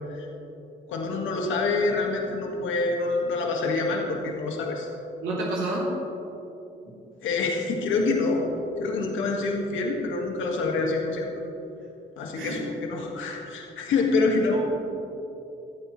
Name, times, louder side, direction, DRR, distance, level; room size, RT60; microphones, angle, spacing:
voice 1, 0.9-4.9 7.2-8.4 8.8-11.3 12.2-14.6, left 3 dB, 80° left, 0 dB, 1.9 m, -26 dB
voice 2, 5.2-5.9 12.3-12.6 14.5-14.6, right 2 dB, 80° right, -6 dB, 3.6 m, -28 dB
26.5 x 9.0 x 3.2 m, 2.9 s
cardioid pair, 90°, 20 cm